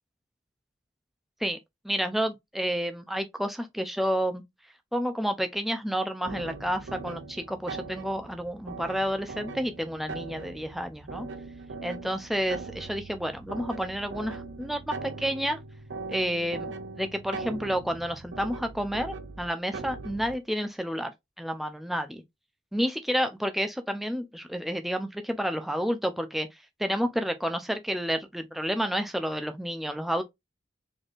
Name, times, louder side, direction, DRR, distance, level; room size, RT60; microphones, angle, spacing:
voice 1, 1.8-4.4 4.9-11.3 11.8-15.6 16.1-21.1 21.4-22.2 22.7-26.5 26.8-30.2, equal, ahead, 0.4 m, -30 dB
sound 1, 6.3-20.4, right 4 dB, 70° right, 0.5 m, -40 dB
4.1 x 3.2 x 2.4 m
head